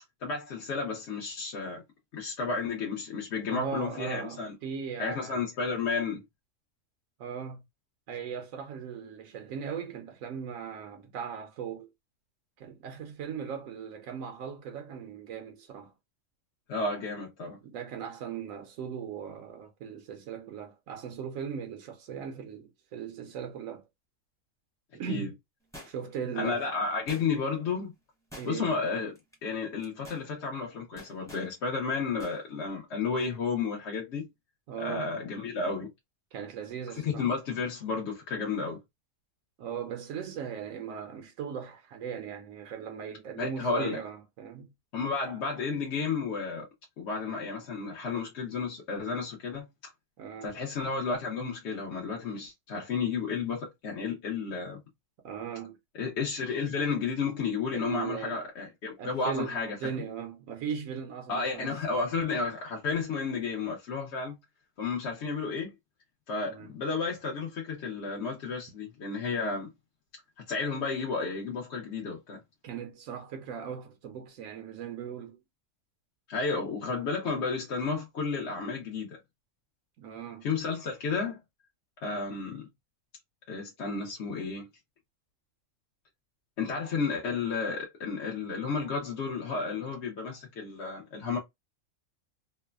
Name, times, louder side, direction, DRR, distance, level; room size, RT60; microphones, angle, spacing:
voice 1, 0.2-1.8 2.1-4.5 5.0-6.2 16.7-17.6 25.1-25.3 26.4-27.9 28.4-29.1 29.4-34.3 34.8-35.9 37.0-38.8 43.4-44.0 44.9-46.7 47.0-49.7 50.4-54.8 55.9-59.8 61.3-64.4 64.8-65.7 66.3-69.7 70.5-72.4 76.3-79.2 80.4-81.4 82.0-82.7 83.5-84.7 86.6-91.4, left 4 dB, 60° left, 0.9 m, -32 dB
voice 2, 3.5-5.4 7.2-7.6 8.1-11.9 12.6-15.9 17.6-23.8 24.9-25.3 25.9-26.7 28.4-28.8 34.7-35.1 36.3-37.3 39.6-44.7 50.2-50.6 55.2-55.8 57.7-58.5 59.0-61.8 66.5-66.8 72.6-75.4 80.0-80.5, right 7 dB, 80° right, 1.0 m, -38 dB
sound 1, 25.7-26.2 27.1-27.6 28.3-28.8 29.2-29.4 29.8-30.3 31.0-31.5 32.2-32.4 32.7-32.8, left 1 dB, 5° left, 0.6 m, -48 dB
3.1 x 2.0 x 2.2 m
omnidirectional pair, 1.4 m